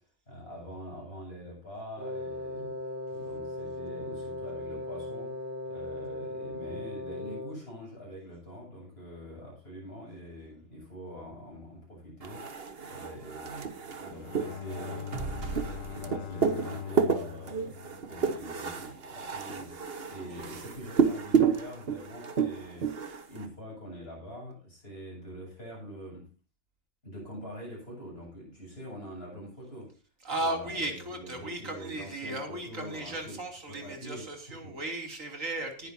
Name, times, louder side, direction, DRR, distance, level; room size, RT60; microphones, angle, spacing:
voice 1, 0.0-2.7 3.1-5.4 5.6-12.5 12.8-15.1 15.7-19.8 20.1-26.3 27.0-30.0 30.4-34.8, equal, 50° left, 8.2 m, -45 dB
Wind instrument woodwind instrument, 2.0-7.7, left 2 dB, 10° right, 4.8 m, -38 dB
sound 1, 12.2-23.5, right 6 dB, 50° right, 1.4 m, -31 dB
Bowed string instrument, 13.8-19.0, left 8 dB, 75° left, 1.2 m, -42 dB
voice 2, 30.2-35.9, right 2 dB, 75° right, 3.5 m, -36 dB
19.0 x 10.5 x 2.8 m
omnidirectional pair, 1.4 m